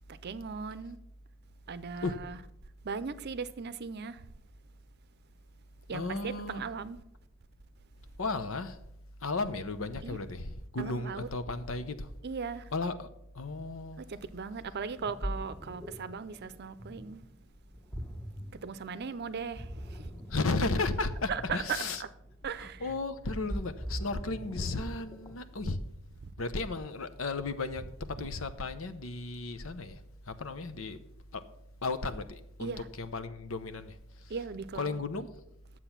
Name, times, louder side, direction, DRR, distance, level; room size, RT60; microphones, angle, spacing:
voice 1, 0.1-1.0 1.7-2.4 2.8-4.2 5.9-7.0 10.0-10.2 10.8-11.3 12.2-12.7 14.0-17.2 18.5-20.1 21.3-22.1 22.4-22.9 25.6-25.8 27.8-27.9 28.1-28.3 32.6-32.9 34.3-35.0, right 5 dB, 50° right, 0.6 m, -38 dB
voice 2, 5.9-6.6 8.2-8.8 9.2-12.1 12.7-13.1 13.3-14.0 20.3-22.0 22.6-25.8 26.4-30.0 30.3-31.0 31.3-31.4 31.8-32.7 33.0-34.0 34.7-35.3, left 3 dB, 75° left, 0.8 m, -34 dB
Ocean, 14.8-25.6, equal, 10° left, 1.5 m, -42 dB
10.0 x 7.6 x 5.8 m
head